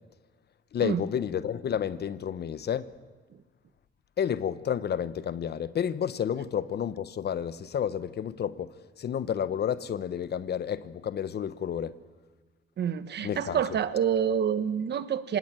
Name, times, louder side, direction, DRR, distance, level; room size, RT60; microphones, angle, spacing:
voice 1, 0.7-2.9 4.2-11.9 13.2-13.6, left 8 dB, 55° left, 1.1 m, -31 dB
voice 2, 12.8-15.4, right 8 dB, 60° right, 1.5 m, -27 dB
25.5 x 19.5 x 9.0 m
cardioid pair, 90°, 20 cm